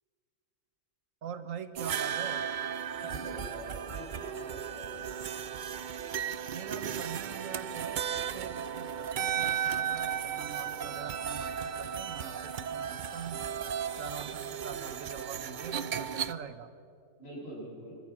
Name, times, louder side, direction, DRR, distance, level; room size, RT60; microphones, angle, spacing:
voice 1, 1.2-2.5 6.5-13.4 14.0-16.7, right 7 dB, 80° right, 10 dB, 1.5 m, -43 dB
sound 1, 1.8-16.3, right 8 dB, 55° right, 0.6 m, -35 dB
voice 2, 3.0-5.2 17.2-18.0, equal, 50° left, -5 dB, 8.1 m, -44 dB
25.5 x 15.0 x 7.5 m, 2.6 s
omnidirectional pair, 1.3 m